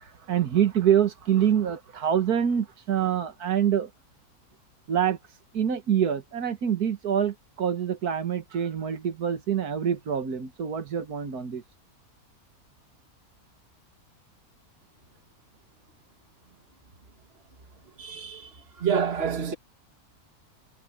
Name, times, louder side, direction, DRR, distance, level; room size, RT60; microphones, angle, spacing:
voice 1, 0.0-3.9 4.9-5.2 5.5-11.6, right 9 dB, 80° right, 2.0 m, -25 dB
voice 2, 18.0-18.5 18.8-19.5, right 7 dB, 40° right, 1.9 m, -27 dB
omnidirectional pair, 1.6 m